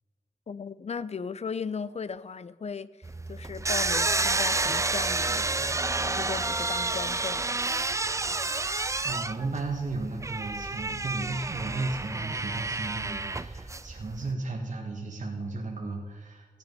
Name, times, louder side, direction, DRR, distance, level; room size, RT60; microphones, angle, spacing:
voice 1, 0.5-5.5 6.0-7.6, left 5 dB, 50° left, 0.5 m, -37 dB
sound 1, 3.0-14.3, right 3 dB, 20° right, 0.4 m, -30 dB
voice 2, 8.7-16.6, right 3 dB, 60° right, 1.7 m, -35 dB
14.5 x 9.0 x 5.5 m
wide cardioid pair, 95°, 14 cm